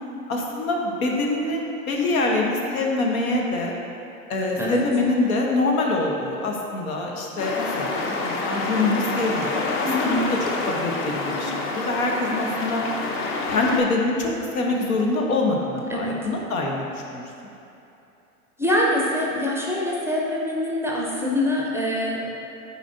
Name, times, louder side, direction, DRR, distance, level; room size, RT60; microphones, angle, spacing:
voice 1, 0.3-3.8 4.3-10.4 10.6-12.8 13.5-17.5, left 2 dB, 75° left, 0 dB, 1.1 m, -25 dB
sound 1, 7.4-13.8, left 3 dB, 30° left, 0.7 m, -27 dB
voice 2, 9.8-10.2 15.9-16.2 18.6-22.4, left 1 dB, 5° right, -3 dB, 0.5 m, -24 dB
9.2 x 4.1 x 2.6 m, 2.9 s
hypercardioid pair, 95°, 43 cm